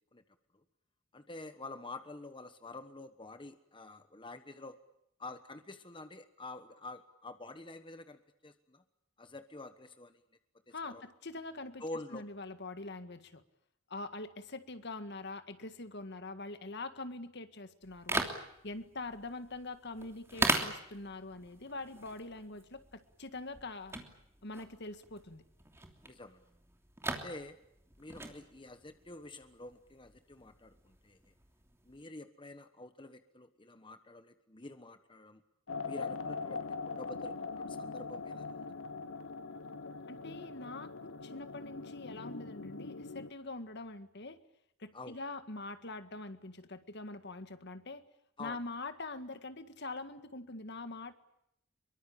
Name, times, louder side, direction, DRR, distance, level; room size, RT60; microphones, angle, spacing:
voice 1, 1.1-4.8 5.2-8.8 9.2-10.2 10.7-11.0 11.8-12.2 26.0-26.4 27.2-27.6 28.0-31.2 31.8-35.4 35.8-38.7 44.9-45.2 48.4-48.6, left 2 dB, 25° left, 9 dB, 1.3 m, -48 dB
voice 2, 10.7-11.8 12.1-13.4 13.9-18.2 18.6-24.0 24.4-25.4 40.1-44.4 44.8-48.0 48.4-51.1, left 2 dB, 55° left, 10 dB, 1.8 m, -44 dB
sound 1, 17.8-32.0, right 2 dB, 15° right, 3.1 m, -40 dB
sound 2, 35.7-43.3, left 4 dB, 90° left, 1.0 m, -42 dB
25.0 x 23.5 x 8.7 m, 0.78 s
head